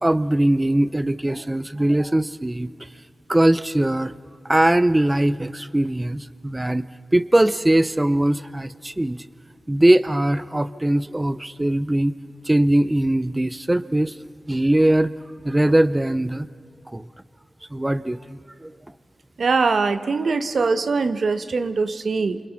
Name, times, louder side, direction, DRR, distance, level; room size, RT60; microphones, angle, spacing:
voice 1, 0.0-2.9 3.3-4.1 4.4-9.3 9.7-12.1 12.4-14.2 14.5-15.1 15.4-16.5 16.9-17.1 17.7-18.8, right 1 dB, 15° right, 15 dB, 0.6 m, -21 dB
voice 2, 19.4-22.4, right 4 dB, 75° right, 10 dB, 1.2 m, -22 dB
29.0 x 28.0 x 5.9 m, 2.3 s
wide cardioid pair, 85°, 0 cm